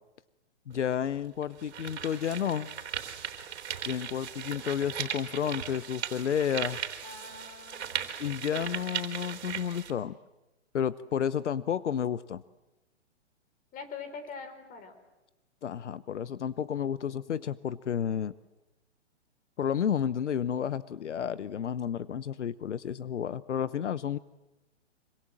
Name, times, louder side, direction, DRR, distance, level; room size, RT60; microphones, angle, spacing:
voice 1, 0.7-2.7 3.9-6.8 8.2-10.2 10.7-12.4 15.6-18.3 19.6-24.2, left 8 dB, 85° left, 16 dB, 0.9 m, -31 dB
sound 1, 0.7-0.8 1.4-9.9, right 9 dB, 65° right, 3.7 m, -38 dB
voice 2, 7.0-8.2 8.5-8.9 13.7-15.0, left 5 dB, 25° left, 9 dB, 4.5 m, -44 dB
26.0 x 25.5 x 7.6 m, 1.0 s
hypercardioid pair, 135°, 34 cm